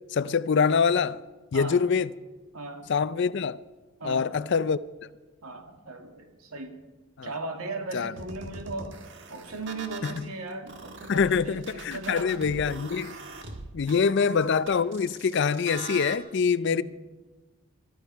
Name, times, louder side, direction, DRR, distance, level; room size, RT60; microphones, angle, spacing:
voice 1, 0.1-1.2 1.5-2.1 2.9-3.6 4.0-4.8 7.2-7.3 7.9-8.1 10.0-10.2 11.1-13.2 13.7-16.8, left 6 dB, 50° left, 0.4 m, -25 dB
voice 2, 1.5-1.9 2.5-2.9 4.0-4.3 5.4-6.8 7.2-9.0 9.3-12.4 14.1-14.2 16.6-16.8, right 2 dB, 75° right, 2.2 m, -37 dB
sound 1, 8.2-10.2 10.7-16.2, right 3 dB, 55° right, 1.5 m, -42 dB
22.0 x 13.0 x 4.6 m
head